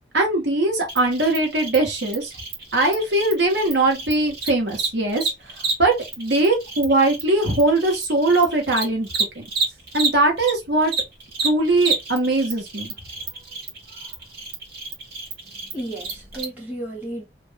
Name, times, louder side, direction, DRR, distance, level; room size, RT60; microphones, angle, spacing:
voice 1, 0.1-2.3 2.7-5.3 5.8-9.1 9.3-9.4 9.9-10.9 11.4-12.9, right 2 dB, 85° right, 1.2 m, -20 dB
Cricket, 0.9-10.5 10.8-16.4, right 4 dB, 60° right, 1.1 m, -29 dB
voice 2, 15.4-17.2, right 1 dB, 10° right, 1.3 m, -33 dB
2.6 x 2.6 x 3.3 m
head